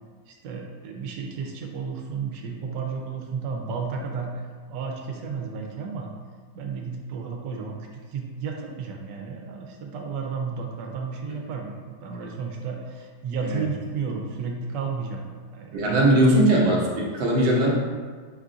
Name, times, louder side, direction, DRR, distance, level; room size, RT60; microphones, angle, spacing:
voice 1, 0.3-6.1 6.5-16.4, right 5 dB, 85° right, 2 dB, 1.2 m, -33 dB
voice 2, 15.7-17.8, right 1 dB, 45° right, -4 dB, 1.0 m, -20 dB
5.5 x 2.4 x 3.7 m, 1.6 s
omnidirectional pair, 1.9 m